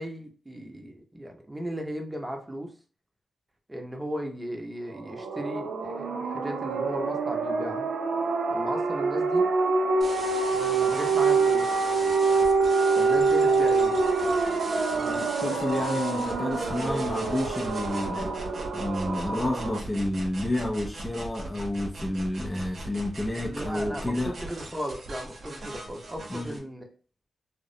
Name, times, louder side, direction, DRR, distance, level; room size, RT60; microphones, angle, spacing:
voice 1, 0.0-2.7 3.7-7.9 8.5-9.5 10.5-11.7 13.0-14.0 15.1-15.6 23.3-26.8, equal, 20° right, 0.7 m, -36 dB
sound 1, 5.0-19.8, right 4 dB, 85° right, 0.3 m, -26 dB
sound 2, 10.0-26.6, right 2 dB, 65° right, 0.7 m, -40 dB
voice 2, 15.0-18.4 18.7-24.4 26.3-26.6, left 1 dB, 25° left, 0.4 m, -30 dB
2.3 x 2.0 x 2.7 m
supercardioid pair, 45°, 0 cm